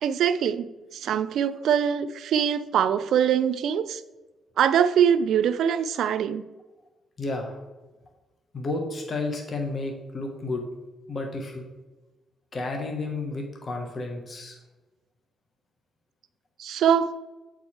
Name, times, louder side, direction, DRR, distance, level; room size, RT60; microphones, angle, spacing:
voice 1, 0.0-4.0 4.6-6.5 16.6-17.2, right 8 dB, 70° right, 14 dB, 0.4 m, -23 dB
voice 2, 7.2-7.6 8.5-10.6 11.1-11.6 12.5-14.6, left 2 dB, 40° left, 2 dB, 1.3 m, -31 dB
7.9 x 4.8 x 4.3 m, 1.2 s
cardioid pair, 90°, 0 cm